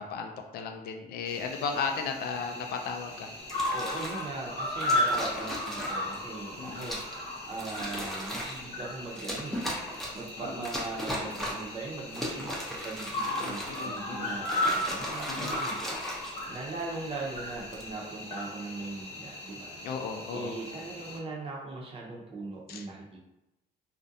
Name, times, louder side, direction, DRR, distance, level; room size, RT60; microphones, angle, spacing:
voice 1, 0.0-3.3 6.6-6.9 10.4-10.7 13.3-14.4 15.3-15.6 19.8-20.6 22.7-22.9, left 5 dB, 65° left, 4 dB, 0.4 m, -36 dB
Cricket, 1.3-21.2, left 1 dB, 35° left, 0.8 m, -36 dB
sound 1, 3.4-4.2 4.8-6.1 6.8-7.2 7.5-8.6 9.1-10.3 10.6-11.7 12.1-14.0 14.4-16.8 17.5-17.9, equal, ahead, 0.6 m, -37 dB
voice 2, 3.7-9.6 10.1-19.8 20.3-23.2, right 3 dB, 35° right, -3 dB, 0.7 m, -40 dB
2.5 x 2.1 x 2.6 m, 0.92 s
cardioid pair, 110°, 17 cm